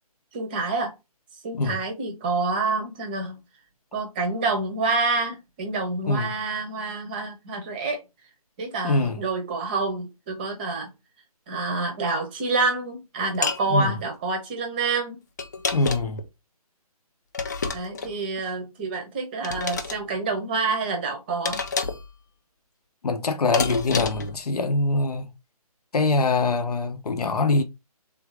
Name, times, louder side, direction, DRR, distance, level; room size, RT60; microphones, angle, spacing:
voice 1, 0.3-0.9 1.4-3.4 3.9-8.0 8.6-10.9 11.5-15.2 17.7-21.6, right 3 dB, 15° right, 0.7 m, -27 dB
voice 2, 8.8-9.2 13.7-13.9 15.7-16.2 23.0-25.3 25.9-27.6, left 3 dB, 75° left, 0.8 m, -23 dB
sound 1, 13.4-13.6 15.4-16.2 17.3-18.1 19.4-20.0 21.4-22.1 23.5-24.3, left 4 dB, 30° left, 0.4 m, -28 dB
3.5 x 2.8 x 4.6 m
hypercardioid pair, 165°, 20 cm